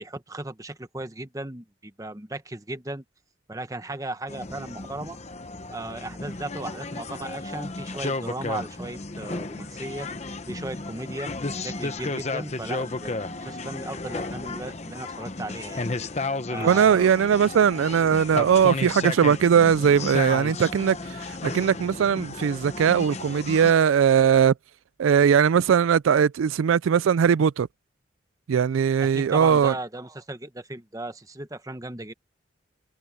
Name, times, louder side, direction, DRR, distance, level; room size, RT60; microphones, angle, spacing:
voice 1, 0.0-3.0 3.5-5.2 5.7-10.1 10.5-11.3 11.6-15.8 16.5-17.1 29.0-32.1, right 2 dB, 15° right, 1.0 m, -36 dB
sound 1, 4.3-23.7, left 3 dB, 35° left, 0.9 m, -33 dB
voice 2, 16.6-24.5 25.0-27.7 28.5-29.7, right 7 dB, 90° right, 0.4 m, -20 dB
head